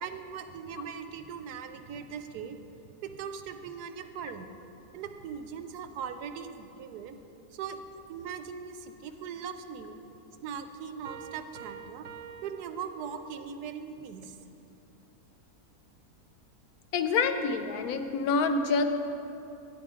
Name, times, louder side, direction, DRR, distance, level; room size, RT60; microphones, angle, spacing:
voice 1, 0.0-2.6 3.0-4.5 4.9-7.2 7.5-7.8 8.1-9.9 10.4-12.1 12.4-14.4, right 7 dB, 85° right, 8 dB, 1.1 m, -40 dB
Piano, 11.0-13.5, right 8 dB, 65° right, 1.0 m, -47 dB
voice 2, 16.9-18.8, left 4 dB, 75° left, 7 dB, 1.1 m, -27 dB
9.9 x 8.7 x 3.7 m, 2.9 s
omnidirectional pair, 1.7 m